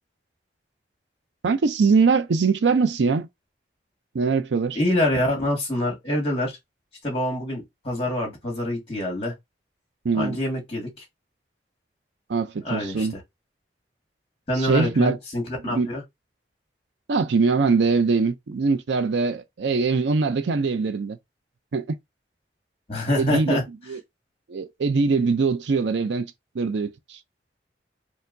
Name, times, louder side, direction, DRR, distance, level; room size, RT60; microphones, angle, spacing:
voice 1, 1.4-3.3 4.1-4.8 10.0-10.4 12.3-13.2 14.6-15.2 15.6-15.9 17.1-21.2 21.7-22.0 23.1-23.6 23.9-24.0 24.5-27.2, right 4 dB, 80° right, 0.5 m, -22 dB
voice 2, 4.7-6.6 7.0-9.3 10.1-11.0 12.6-13.1 14.5-16.0 22.9-23.6, left 1 dB, 30° left, 1.7 m, -26 dB
4.4 x 2.0 x 2.6 m
head